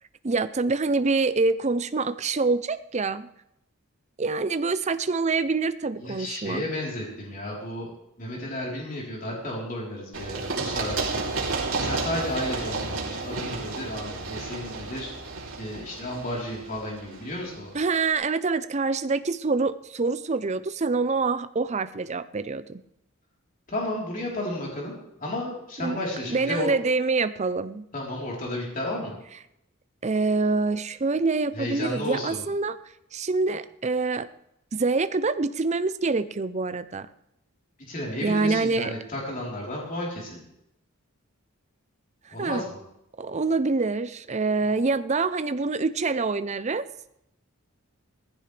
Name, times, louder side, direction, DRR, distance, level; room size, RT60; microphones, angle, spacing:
voice 1, 0.2-3.3 4.2-6.6 17.7-22.8 25.8-26.0 26.3-27.8 30.0-32.8 33.1-34.3 34.8-37.1 38.2-38.9 42.4-42.6 43.2-46.8, right 3 dB, 35° right, 12 dB, 0.6 m, -26 dB
voice 2, 6.0-7.9 8.2-11.2 11.8-15.1 15.6-17.7 23.7-26.7 27.9-29.2 31.5-32.5 37.9-40.4 42.3-42.8, left 1 dB, 40° left, -3 dB, 3.8 m, -32 dB
Run, 10.1-17.8, right 3 dB, 85° right, 3.2 m, -32 dB
19.0 x 15.0 x 3.4 m, 0.81 s
head